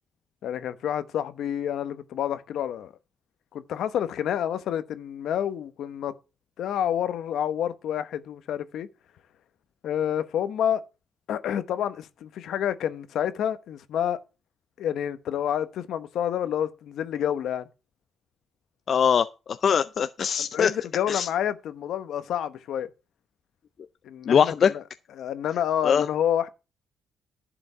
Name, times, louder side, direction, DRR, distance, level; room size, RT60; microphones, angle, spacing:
voice 1, 0.4-2.9 3.5-6.1 6.6-8.9 9.8-10.8 11.3-14.2 14.8-17.7 20.4-22.9 24.0-24.8 25.2-26.5, left 10 dB, 75° left, 1.0 m, -28 dB
voice 2, 18.9-20.7 21.1-21.3 24.3-24.7 25.8-26.0, left 7 dB, 55° left, 0.4 m, -22 dB
11.0 x 5.1 x 6.7 m
cardioid pair, 90°, 0 cm